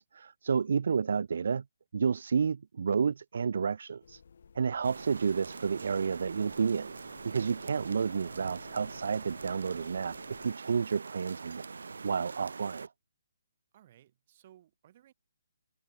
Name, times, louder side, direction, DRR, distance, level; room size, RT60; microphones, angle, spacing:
voice 1, 0.0-1.6 1.9-4.2 4.5-7.0 7.2-11.6 12.0-12.9, right 6 dB, 55° right, 0.4 m, -30 dB
sound 1, 4.0-10.5, left 6 dB, 55° left, 7.9 m, -56 dB
voice 2, 4.8-5.2 13.7-15.1, right 12 dB, 30° right, 6.4 m, -60 dB
sound 2, 4.8-12.9, right 4 dB, 75° right, 1.5 m, -44 dB
hypercardioid pair, 170°, 0 cm